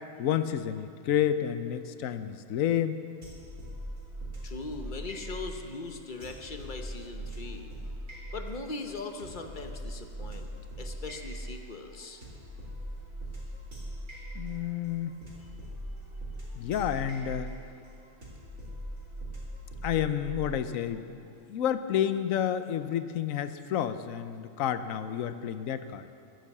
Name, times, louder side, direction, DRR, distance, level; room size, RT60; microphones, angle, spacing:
voice 1, 0.2-3.0 14.3-15.1 16.6-17.5 19.8-21.2 21.5-26.0, left 10 dB, 80° left, 11 dB, 1.1 m, -30 dB
sound 1, 3.2-21.0, right 1 dB, 80° right, 3.6 m, -41 dB
voice 2, 4.4-7.7 8.3-10.5 10.8-12.2 15.4-15.5, left 3 dB, 40° left, 5 dB, 1.0 m, -40 dB
14.0 x 10.0 x 7.2 m, 2.5 s
omnidirectional pair, 1.4 m